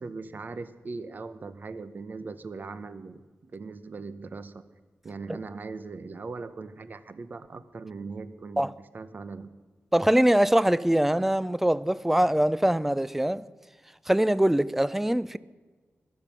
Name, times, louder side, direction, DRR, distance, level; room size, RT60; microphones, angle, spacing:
voice 1, 0.0-4.6 5.0-9.5, right 4 dB, 45° right, 0.7 m, -40 dB
voice 2, 9.9-13.4 14.1-15.4, right 1 dB, 5° right, 0.3 m, -23 dB
15.5 x 12.0 x 6.0 m
wide cardioid pair, 165°, 4 cm